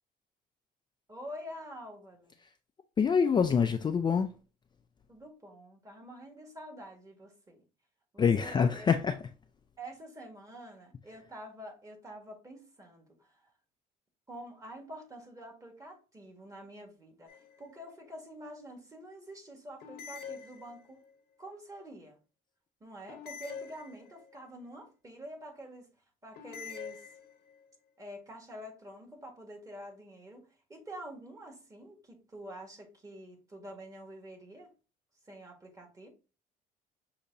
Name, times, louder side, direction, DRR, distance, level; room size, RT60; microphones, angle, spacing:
voice 1, 1.1-2.3 5.1-7.6 8.1-8.9 9.8-13.5 14.3-21.0 21.4-22.2 22.8-25.9 26.2-27.1 28.0-34.7 35.2-36.1, equal, 20° right, 1.6 m, -47 dB
voice 2, 3.0-4.3 8.2-9.2, left 6 dB, 25° left, 0.4 m, -25 dB
sound 1, 17.3-17.9 19.8-21.1 23.1-24.4 26.3-27.6, left 7 dB, 70° left, 0.9 m, -46 dB
6.6 x 2.9 x 2.7 m
cardioid pair, 110°, 17 cm